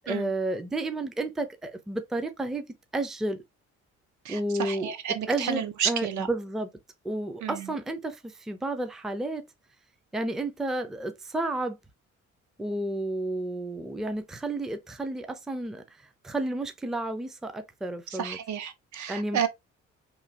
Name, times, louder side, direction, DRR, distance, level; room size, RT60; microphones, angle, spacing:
voice 1, 0.0-2.7 2.9-3.4 4.3-4.9 5.3-6.7 7.0-9.4 10.1-11.8 12.6-15.8 16.2-18.4 19.1-19.4, right 2 dB, ahead, 0.4 m, -31 dB
voice 2, 4.2-6.3 7.4-7.7 18.1-19.5, right 9 dB, 70° right, 0.6 m, -31 dB
3.1 x 2.2 x 2.6 m
cardioid pair, 90°, 30 cm